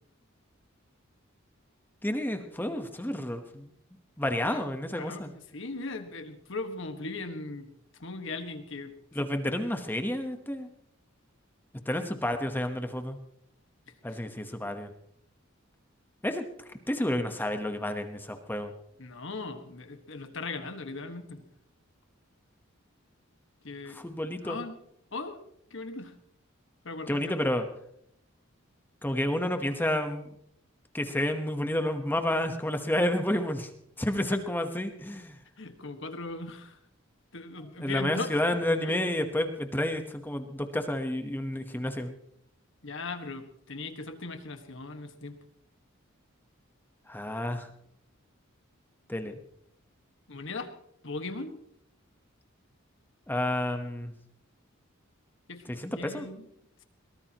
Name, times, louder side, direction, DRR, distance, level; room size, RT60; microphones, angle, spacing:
voice 1, 2.0-3.7 4.2-5.3 9.1-10.7 11.9-13.2 14.0-14.9 16.2-16.4 16.9-18.7 23.9-24.6 27.1-27.7 29.0-30.3 30.9-33.7 34.0-35.4 37.8-42.2 47.1-47.7 49.1-49.3 53.3-54.1 55.7-56.3, left 1 dB, 10° left, 7 dB, 1.1 m, -30 dB
voice 2, 5.0-7.7 8.0-8.9 9.2-9.3 19.0-21.4 23.6-24.0 24.4-24.7 25.1-25.4 25.7-26.1 26.8-27.4 35.6-36.8 37.3-38.3 38.8-39.0 42.8-45.4 50.3-50.7 51.0-51.6 55.5-55.6 56.0-56.5, left 3 dB, 65° left, 7 dB, 1.6 m, -38 dB
22.0 x 18.5 x 3.0 m, 0.71 s
head